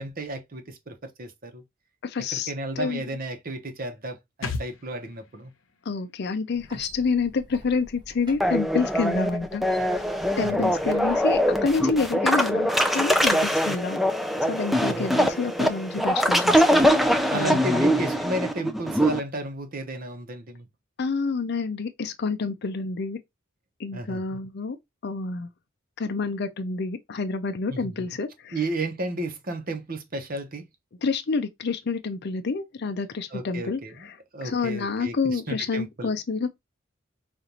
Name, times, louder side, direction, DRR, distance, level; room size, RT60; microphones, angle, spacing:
voice 1, 0.0-1.6 2.3-5.5 10.4-10.7 14.8-15.2 17.3-20.7 23.9-24.2 27.7-28.1 28.5-30.6 33.3-34.1 34.3-36.1, right 1 dB, 45° right, 0.9 m, -33 dB
voice 2, 2.0-3.0 5.9-9.6 10.4-14.0 14.5-17.9 21.0-23.2 23.8-24.8 25.0-25.5 26.0-28.6 31.0-34.1 34.4-36.5, left 4 dB, 55° left, 0.5 m, -28 dB
sound 1, 4.4-8.3, left 3 dB, 80° left, 0.8 m, -39 dB
sound 2, 6.5-12.1, left 1 dB, 20° right, 1.2 m, -47 dB
sound 3, 8.4-19.2, equal, ahead, 0.4 m, -23 dB
5.2 x 2.5 x 2.9 m
head